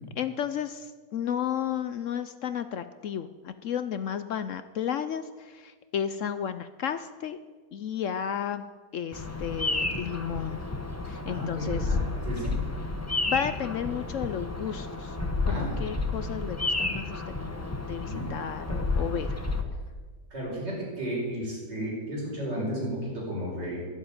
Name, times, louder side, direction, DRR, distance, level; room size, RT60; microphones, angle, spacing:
voice 1, 0.2-7.4 7.7-8.6 8.9-10.6 11.1-12.0 13.3-15.2 15.5-19.3, left 8 dB, 70° left, 11 dB, 0.7 m, -33 dB
Bird vocalization bird call bird song, 9.1-19.6, left 2 dB, 10° left, 0.8 m, -31 dB
voice 2, 11.3-12.0 12.2-12.6 15.4-15.7 18.1-18.3 20.3-23.9, equal, 75° right, -4 dB, 5.9 m, -33 dB
11.5 x 10.5 x 8.7 m, 1.4 s
omnidirectional pair, 1.9 m